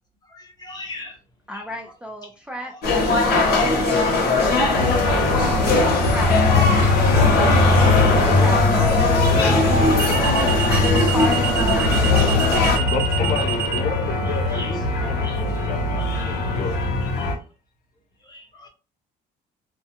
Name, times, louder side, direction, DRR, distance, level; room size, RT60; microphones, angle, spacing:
voice 1, 0.2-1.2 1.5-1.7 2.2-2.3 2.7-2.8 5.9-6.1 9.3-10.1 10.4-10.9 12.3-12.4 14.2-17.3 18.2-18.7, left 2 dB, 25° left, 0.9 m, -42 dB
voice 2, 1.5-7.9 8.3-10.0 10.3-12.5, equal, 5° right, 0.4 m, -33 dB
sound 1, 2.8-12.8, left 2 dB, 70° left, 1.0 m, -20 dB
sound 2, 4.8-17.4, left 3 dB, 90° left, 0.6 m, -21 dB
sound 3, 5.4-5.7 8.7-13.8, right 8 dB, 85° right, 0.6 m, -27 dB
voice 3, 12.9-16.8, left 4 dB, 50° left, 0.5 m, -31 dB
2.3 x 2.1 x 2.8 m
cardioid pair, 110°, 17 cm